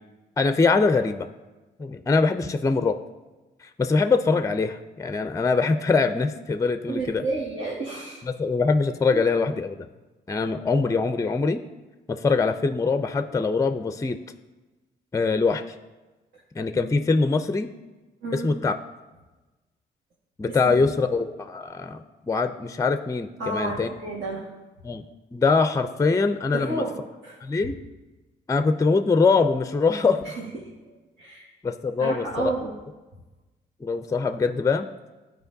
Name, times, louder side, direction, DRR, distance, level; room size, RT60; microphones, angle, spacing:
voice 1, 0.4-1.3 1.8-3.0 3.6-7.3 8.2-9.9 10.3-11.6 12.1-14.2 15.1-15.6 16.5-17.7 18.3-18.8 20.4-23.9 24.8-25.0 25.3-26.8 27.4-27.8 28.5-30.2 31.6-32.5 33.8-34.9, left 4 dB, 15° left, 9 dB, 0.4 m, -23 dB
voice 2, 6.9-8.2 9.1-9.2 18.2-18.5 20.6-20.8 23.4-24.5 26.5-26.9 27.2-27.4 30.2-30.7 31.2-31.5 32.0-32.7, right 3 dB, 65° right, -5 dB, 1.6 m, -31 dB
12.5 x 4.5 x 2.7 m, 1.2 s
supercardioid pair, 50°, 20 cm